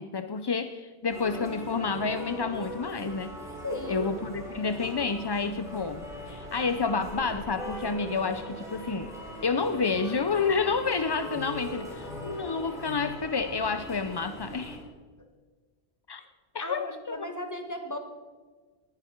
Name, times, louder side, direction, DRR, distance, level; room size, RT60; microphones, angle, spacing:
voice 1, 0.0-3.3 3.9-9.1 9.4-14.8 16.1-16.2 16.5-17.3, left 5 dB, 40° left, 9 dB, 0.3 m, -29 dB
sound 1, 1.1-14.8, equal, 5° right, 4.0 m, -40 dB
voice 2, 3.6-4.1 16.6-18.0, left 1 dB, 15° left, 4 dB, 1.5 m, -35 dB
19.0 x 11.0 x 4.5 m, 1.4 s
omnidirectional pair, 1.1 m